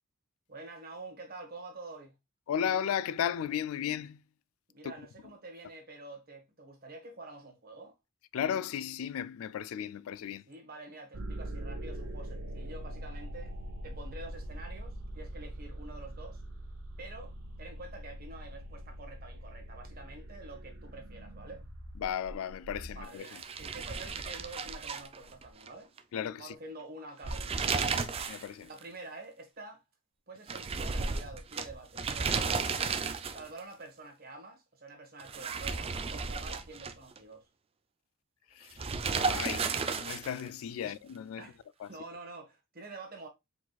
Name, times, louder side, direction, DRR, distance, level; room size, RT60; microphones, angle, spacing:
voice 1, 0.5-2.1 4.7-7.9 10.5-13.5 13.8-16.4 17.0-21.7 22.9-25.9 26.4-27.9 28.6-29.8 30.3-32.8 33.3-37.5 40.8-40.9 41.4-41.6 41.9-43.3, right 2 dB, 45° right, 1.4 m, -47 dB
voice 2, 2.5-4.2 4.8-4.9 8.3-10.4 22.0-23.4 26.1-26.6 28.3-28.7 38.5-38.8 39.2-41.4 41.8-41.9, left 9 dB, 85° left, 0.3 m, -35 dB
sound 1, 11.1-23.0, right 1 dB, 85° right, 1.0 m, -43 dB
sound 2, 23.2-25.7 26.0-26.1 27.1-28.5 28.8-28.9 30.5-33.6 35.2-37.2 38.8-40.5, right 5 dB, 30° right, 0.4 m, -33 dB
4.7 x 4.0 x 2.3 m
head